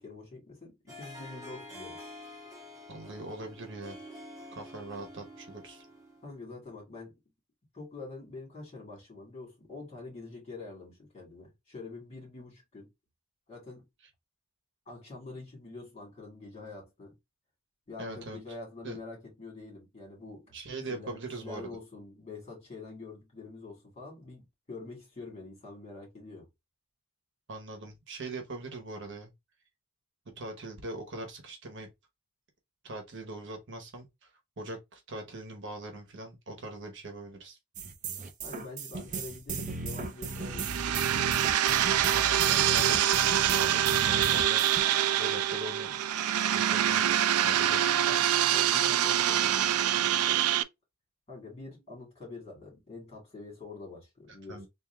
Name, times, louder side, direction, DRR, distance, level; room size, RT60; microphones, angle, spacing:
voice 1, 0.0-2.0 6.2-7.1 7.7-12.9 13.5-13.9 14.9-17.2 17.9-20.6 20.8-26.5 38.4-41.3 42.3-42.9 45.9-46.0 48.0-49.6 50.0-50.5 51.3-54.7, left 3 dB, 30° left, 2.3 m, -46 dB
Harp, 0.9-6.3, left 1 dB, 15° right, 1.4 m, -48 dB
voice 2, 2.9-4.0 4.5-5.9 18.0-18.4 18.8-19.0 20.5-21.7 27.5-29.3 30.4-31.9 32.8-37.6 42.0-44.6 45.2-45.9 46.4-47.2 47.4-48.1 54.5-54.7, right 2 dB, 55° right, 1.0 m, -41 dB
sound 1, 37.8-44.8, right 3 dB, 35° right, 0.6 m, -36 dB
sound 2, 40.4-50.6, right 11 dB, 85° right, 0.4 m, -25 dB
3.6 x 2.6 x 3.4 m
head